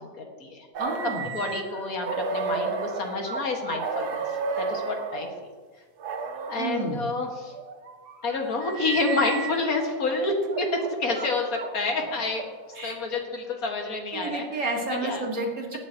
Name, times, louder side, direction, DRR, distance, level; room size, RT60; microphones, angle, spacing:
voice 1, 0.0-0.7 1.2-5.3 6.5-7.5 8.2-12.5 12.8-15.2, left 3 dB, 60° left, 1 dB, 2.2 m, -29 dB
sound 1, 0.7-5.3 6.0-6.8 7.5-9.9 10.4-12.8, right 4 dB, 70° right, 1.6 m, -33 dB
voice 2, 0.8-1.3 6.6-7.0 12.8-13.0 14.1-15.8, right 2 dB, 50° right, 0 dB, 2.3 m, -30 dB
17.5 x 11.5 x 3.0 m, 1.5 s
omnidirectional pair, 1.8 m